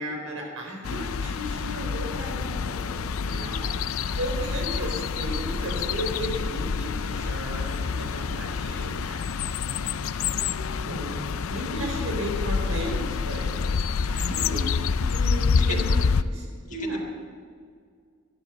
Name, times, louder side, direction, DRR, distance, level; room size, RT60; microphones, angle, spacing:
voice 1, 0.0-9.7 10.3-11.2 11.5-13.5 14.0-14.7 15.1-15.9 16.2-17.0, equal, 85° right, 0 dB, 4.2 m, -35 dB
sound 1, 0.8-16.2, left 5 dB, 85° left, 0.5 m, -27 dB
sound 2, 1.4-9.0, left 1 dB, 55° left, 2.4 m, -40 dB
voice 2, 14.1-14.6 15.5-15.8 16.7-17.0, left 4 dB, 35° left, 2 dB, 1.6 m, -38 dB
13.5 x 11.0 x 6.6 m, 2.1 s
head